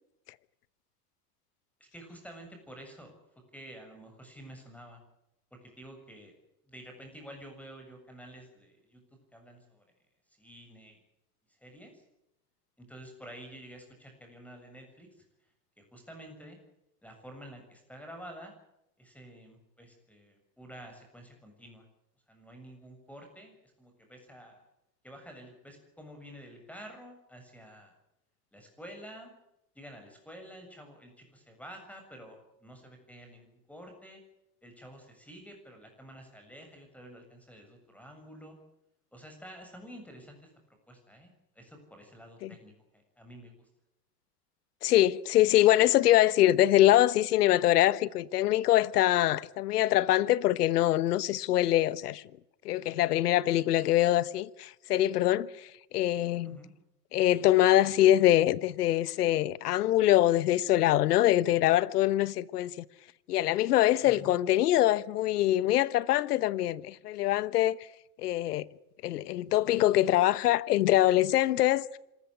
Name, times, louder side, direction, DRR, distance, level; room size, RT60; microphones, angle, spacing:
voice 1, 1.8-3.1 3.5-5.0 5.5-6.3 6.7-9.9 10.3-11.0 11.5-12.0 12.8-15.3 15.8-16.6 17.0-18.5 19.0-21.9 22.3-24.6 25.0-27.9 28.5-29.3 29.8-34.2 34.6-38.6 39.1-43.7 56.4-56.7 64.0-64.4, equal, 5° left, 7.0 m, -49 dB
voice 2, 44.8-52.2 52.6-56.6 57.1-62.8 63.3-67.8 68.2-68.7 69.0-72.0, left 14 dB, 75° left, 1.2 m, -24 dB
26.5 x 14.5 x 9.9 m
hypercardioid pair, 100°, 47 cm